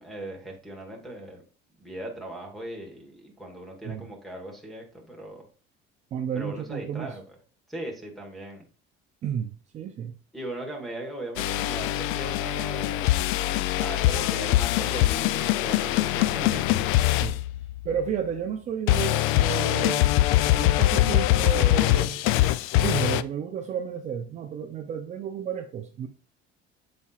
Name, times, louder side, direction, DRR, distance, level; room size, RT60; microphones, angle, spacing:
voice 1, 0.0-1.4 1.8-5.4 6.3-7.2 7.7-8.6 10.3-13.1 13.5-16.8, right 1 dB, ahead, 1 dB, 1.4 m, -38 dB
voice 2, 6.1-7.2 9.2-10.1 17.2-17.4 17.8-20.1 20.6-22.2 22.8-26.1, right 8 dB, 35° right, 5 dB, 0.5 m, -32 dB
sound 1, 11.4-18.1 18.9-23.2, left 15 dB, 75° left, 0.4 m, -23 dB
12.0 x 4.2 x 2.4 m, 0.38 s
cardioid pair, 175°, 21 cm